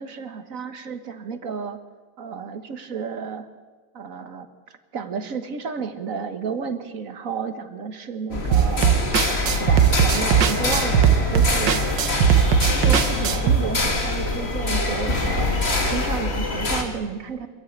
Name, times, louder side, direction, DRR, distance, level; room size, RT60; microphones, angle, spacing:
voice 1, 0.0-1.8 2.2-3.5 3.9-4.5 4.9-8.9 9.6-11.9 12.2-17.5, right 6 dB, 50° right, 9 dB, 1.7 m, -32 dB
sound 1, 8.3-16.8, left 2 dB, 35° left, 2.3 m, -24 dB
sound 2, 8.5-13.6, right 8 dB, 80° right, 1.7 m, -19 dB
25.0 x 14.0 x 8.7 m, 1.4 s
omnidirectional pair, 1.9 m